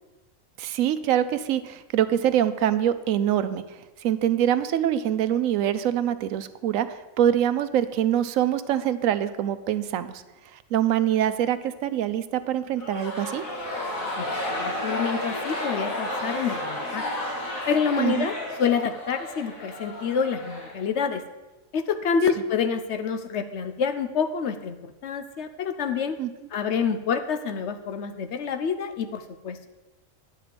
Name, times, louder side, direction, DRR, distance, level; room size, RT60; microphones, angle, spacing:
voice 1, 0.6-3.6 4.0-10.2 10.5-13.4 18.0-18.3 26.2-26.3, right 10 dB, 75° right, 12 dB, 1.0 m, -24 dB
sound 1, 12.7-21.2, left 1 dB, 85° left, 2.1 m, -32 dB
voice 2, 14.2-17.0 17.7-18.3 18.6-21.2 21.7-26.2 26.5-29.7, left 6 dB, 65° left, 9 dB, 0.9 m, -27 dB
9.6 x 7.6 x 5.0 m, 1.1 s
omnidirectional pair, 1.4 m